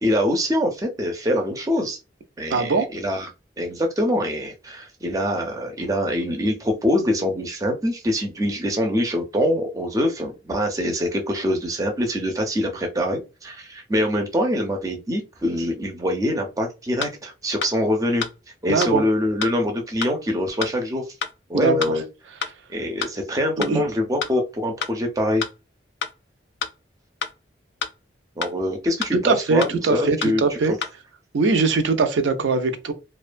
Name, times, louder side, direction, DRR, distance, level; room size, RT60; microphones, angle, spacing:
voice 1, 0.0-2.0 2.4-3.3 3.6-18.2 18.6-21.1 21.5-22.0 22.7-25.4 28.4-30.6, left 1 dB, 20° right, 0.4 m, -24 dB
voice 2, 2.5-2.9 18.7-19.0 21.5-21.8 23.6-23.8 29.1-30.7 31.3-32.9, right 4 dB, 85° right, 0.4 m, -21 dB
sound 1, 17.0-17.1 17.6-17.7 18.2-18.3 18.8-18.9 19.4-19.5 20.0-20.1 20.6-20.7 21.2-21.3 21.8-21.9 22.4-22.5 23.0-23.1 23.6-23.7 24.2-24.3 24.8-24.9 25.4-25.5 26.0-26.1 26.6-26.7 27.2-27.3 27.8-27.9 28.4-28.5 29.0-29.1 29.6-29.7 30.2-30.3 30.8-30.9, left 7 dB, 70° left, 0.3 m, -27 dB
2.4 x 2.2 x 2.5 m
head